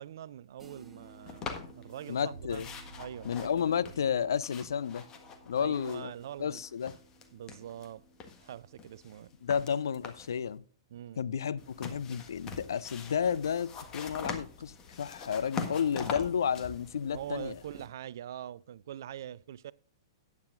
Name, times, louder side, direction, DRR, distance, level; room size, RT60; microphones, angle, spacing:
voice 1, 0.0-2.6 3.0-3.5 5.6-6.6 7.3-8.0 8.4-9.3 10.9-11.2 17.0-19.7, right 11 dB, 50° right, 0.4 m, -43 dB
sound 1, 0.6-10.2, right 2 dB, 10° right, 1.3 m, -59 dB
sound 2, 1.3-2.2 2.5-6.2 6.5-7.9 8.2-10.4 11.6-17.9, left 5 dB, 25° left, 1.5 m, -43 dB
voice 2, 2.1-2.7 3.2-5.0 5.5-6.1 6.4-6.9 9.4-10.6 11.2-17.5, left 7 dB, 60° left, 0.5 m, -31 dB
sound 3, 2.3-9.7, right 1 dB, 80° right, 0.8 m, -55 dB
15.0 x 9.6 x 2.5 m
figure-of-eight pair, 110°, 2 cm